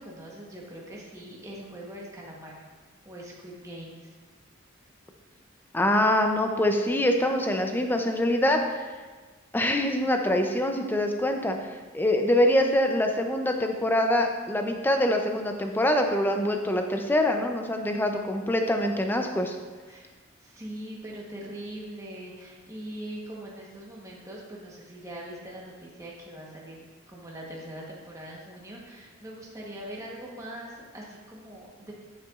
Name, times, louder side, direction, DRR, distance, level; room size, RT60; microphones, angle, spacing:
voice 1, 0.0-2.6 3.0-4.2 19.9-20.1 20.4-31.9, right 1 dB, 15° right, -3 dB, 1.0 m, -42 dB
voice 2, 5.7-8.9 9.5-19.6, left 1 dB, 10° left, 4 dB, 0.5 m, -24 dB
8.7 x 6.7 x 2.4 m, 1.4 s
head